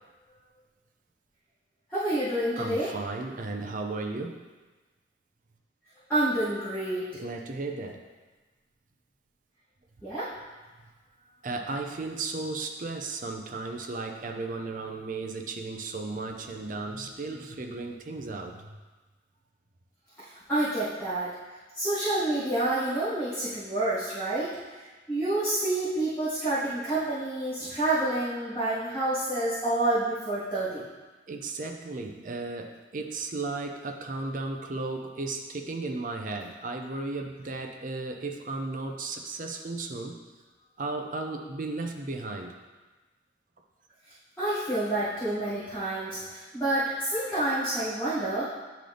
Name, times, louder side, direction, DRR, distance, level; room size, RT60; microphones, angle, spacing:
voice 1, 1.9-2.9 6.1-7.1 10.0-10.3 20.5-21.4 21.7-24.6 25.1-30.8 44.4-48.5, right 1 dB, 5° left, -15 dB, 2.0 m, -28 dB
voice 2, 2.6-4.4 7.1-8.0 11.4-18.8 31.3-40.2 40.8-42.5, right 3 dB, 40° right, 3 dB, 0.5 m, -35 dB
10.0 x 3.9 x 3.3 m, 1.3 s
head